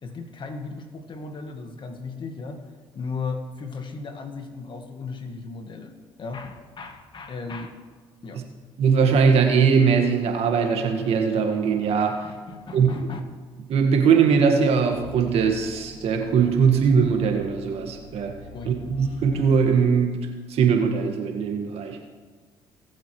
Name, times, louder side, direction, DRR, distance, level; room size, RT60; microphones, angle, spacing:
voice 1, 0.0-2.6 3.0-5.9 6.2-7.7 8.2-8.4 12.2-13.2 18.5-18.8, left 4 dB, 45° left, 5 dB, 1.7 m, -36 dB
voice 2, 8.8-12.2 12.7-13.1 13.7-18.4 18.7-20.2 20.5-22.0, right 6 dB, 65° right, 3 dB, 1.8 m, -21 dB
sound 1, 14.9-19.9, left 1 dB, 65° left, 2.6 m, -43 dB
19.0 x 7.8 x 3.2 m, 1.4 s
supercardioid pair, 65°, 11 cm